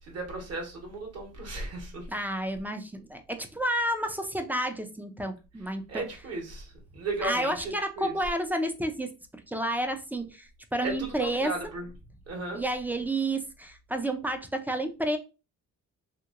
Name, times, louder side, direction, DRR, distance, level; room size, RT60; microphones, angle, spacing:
voice 1, 0.0-2.1 5.9-8.1 10.8-11.9 12.3-12.6, right 2 dB, 55° right, 1.3 m, -35 dB
voice 2, 2.1-6.0 7.2-9.1 9.5-11.5 12.5-15.2, right 1 dB, 5° right, 0.4 m, -30 dB
2.9 x 2.6 x 2.4 m
cardioid pair, 90°, 30 cm